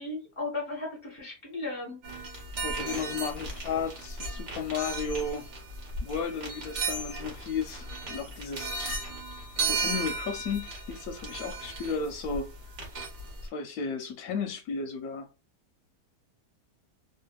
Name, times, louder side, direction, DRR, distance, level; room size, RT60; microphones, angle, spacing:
voice 1, 0.0-2.0, left 2 dB, 20° left, 1.0 m, -35 dB
sound 1, 2.0-13.5, right 3 dB, 50° right, 1.1 m, -35 dB
voice 2, 2.6-5.5 6.0-8.8 9.6-12.5 13.5-15.3, left 5 dB, 70° left, 1.0 m, -34 dB
2.7 x 2.6 x 2.2 m
omnidirectional pair, 1.8 m